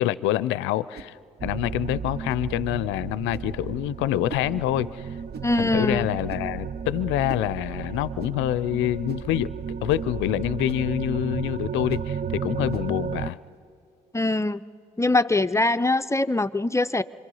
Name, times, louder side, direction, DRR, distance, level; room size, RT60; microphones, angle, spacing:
voice 1, 0.0-5.2 5.5-9.5 9.8-13.4, left 14 dB, 75° left, 18 dB, 0.5 m, -26 dB
sound 1, 0.9-1.2 2.3-2.5 3.3-3.6 4.3-4.5 5.3-5.6 6.3-6.6 7.3-7.5 8.2-8.4 9.1-9.3 9.9-10.1 10.7-10.9 11.9-12.1 12.7-12.9, right 5 dB, 55° right, 1.0 m, -42 dB
sound 2, 1.4-13.3, right 7 dB, 40° right, 0.5 m, -33 dB
voice 2, 5.4-6.1 14.1-14.6 15.0-17.0, left 2 dB, 15° left, 13 dB, 0.5 m, -22 dB
26.0 x 24.0 x 5.5 m, 2.4 s
hypercardioid pair, 50°, 20 cm